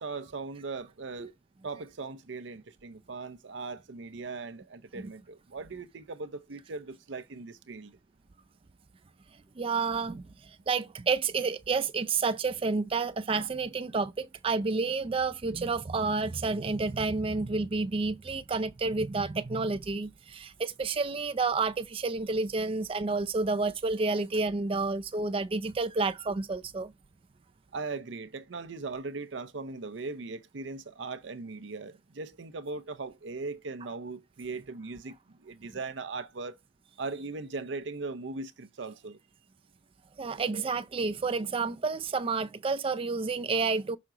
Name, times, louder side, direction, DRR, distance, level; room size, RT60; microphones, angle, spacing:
voice 1, 0.0-1.3 1.6-8.0 27.7-36.6 37.0-39.2, right 3 dB, 75° right, 0.6 m, -39 dB
voice 2, 9.6-26.9 40.2-44.0, right 4 dB, 30° right, 0.4 m, -30 dB
6.0 x 5.8 x 3.8 m
head